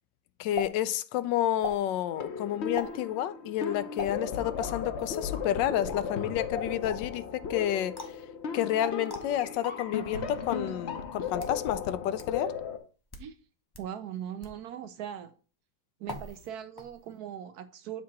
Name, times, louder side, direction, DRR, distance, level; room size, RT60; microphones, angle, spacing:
voice 1, 0.4-8.1 8.5-12.6, left 12 dB, 80° left, 1.2 m, -30 dB
sound 1, 0.6-0.7 1.6-1.8 2.8-3.0 4.0-4.1 5.0-5.3 8.0-8.2 9.1-9.2 10.2-10.3 11.1-11.6 12.2-12.3 13.0-13.3 13.7-13.9 14.4-14.6 16.1-16.5 16.8-17.2, left 1 dB, 20° left, 0.6 m, -39 dB
sound 2, 2.1-12.8, left 6 dB, 55° left, 0.8 m, -36 dB
Explosion, 10.1-11.8, right 3 dB, 45° right, 1.2 m, -47 dB
voice 2, 13.8-15.3 16.0-18.0, right 10 dB, 70° right, 0.9 m, -40 dB
7.5 x 2.9 x 5.8 m
omnidirectional pair, 2.0 m